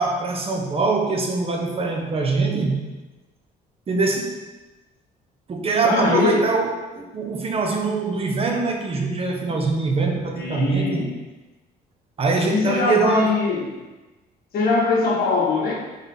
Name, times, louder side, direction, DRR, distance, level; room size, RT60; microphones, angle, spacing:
voice 1, 0.0-2.8 3.9-4.4 5.5-11.1 12.2-13.3, right 3 dB, 35° right, 1 dB, 1.2 m, -23 dB
voice 2, 5.8-6.5 10.4-11.1 12.5-13.7 14.5-15.7, left 4 dB, 60° left, -2 dB, 1.9 m, -21 dB
7.2 x 4.0 x 4.1 m, 1.2 s
cardioid pair, 110°, 17 cm